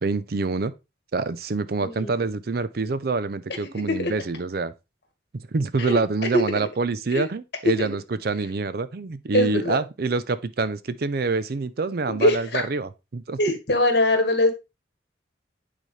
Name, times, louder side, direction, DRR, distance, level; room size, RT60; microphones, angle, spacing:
voice 1, 0.0-0.7 1.1-4.7 5.5-13.4, right 3 dB, 55° right, 0.5 m, -26 dB
voice 2, 1.8-2.1 3.9-4.1 5.8-6.0 6.3-6.6 7.1-7.2 7.8-7.9 9.3-9.8 12.1-12.6 13.4-14.5, left 1 dB, 60° left, 1.6 m, -22 dB
9.1 x 4.1 x 3.2 m
head